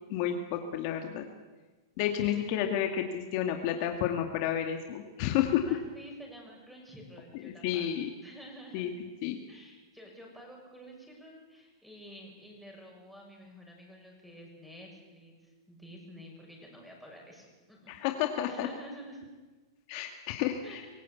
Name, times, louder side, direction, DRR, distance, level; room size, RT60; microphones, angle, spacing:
voice 1, 0.1-1.3 2.0-5.7 7.3-8.1 8.7-9.4 17.9-18.7 19.9-20.8, left 10 dB, 50° left, 5 dB, 2.1 m, -31 dB
voice 2, 2.1-2.8 5.7-7.9 8.2-8.9 9.5-18.0 18.5-19.2 20.6-20.9, right 1 dB, ahead, 0 dB, 7.0 m, -50 dB
25.0 x 16.5 x 8.5 m, 1.3 s
hypercardioid pair, 135°, 2 cm